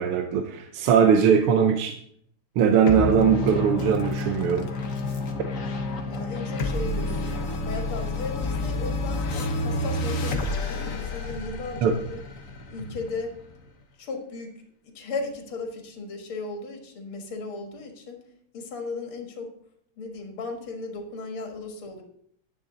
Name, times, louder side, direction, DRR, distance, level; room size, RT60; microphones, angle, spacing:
voice 1, 0.0-2.0 2.6-4.7 11.8-11.9, right 7 dB, 80° right, 6 dB, 1.7 m, -20 dB
sound 1, 2.9-13.7, left 2 dB, 45° left, 1.4 m, -29 dB
voice 2, 6.1-12.2 12.7-13.3 14.0-18.2 18.5-19.5 20.0-22.0, left 3 dB, 75° left, 3 dB, 2.5 m, -36 dB
11.0 x 9.8 x 3.9 m, 0.67 s
omnidirectional pair, 2.4 m